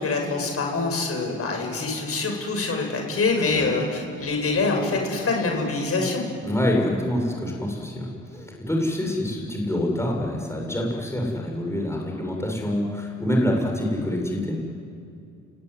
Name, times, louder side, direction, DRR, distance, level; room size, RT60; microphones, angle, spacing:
voice 1, 0.0-6.3, left 3 dB, 50° left, 2 dB, 7.1 m, -25 dB
voice 2, 6.4-14.6, left 1 dB, 10° left, 0 dB, 7.0 m, -26 dB
30.0 x 19.5 x 9.7 m, 2.5 s
cardioid pair, 90°, 30 cm